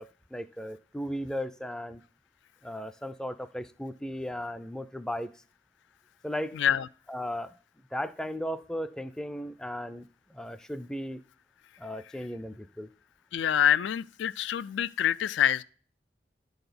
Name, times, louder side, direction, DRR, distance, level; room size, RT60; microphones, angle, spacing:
voice 1, 0.0-2.0 2.6-5.3 6.2-6.6 7.1-7.6 7.9-11.2 11.8-12.9, equal, 5° left, 0.3 m, -36 dB
voice 2, 6.6-6.9 13.3-15.6, left 9 dB, 80° left, 0.3 m, -26 dB
11.5 x 4.0 x 6.8 m
head